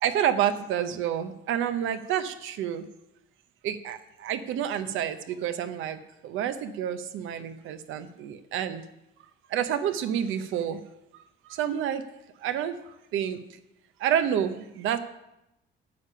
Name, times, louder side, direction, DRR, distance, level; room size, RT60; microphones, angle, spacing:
voice 1, 0.0-2.9 3.6-8.8 9.5-10.8 11.5-12.1 12.4-13.4 14.0-15.0, right 9 dB, 90° right, 10 dB, 0.8 m, -29 dB
9.5 x 6.9 x 5.6 m, 0.88 s
cardioid pair, 90°, 20 cm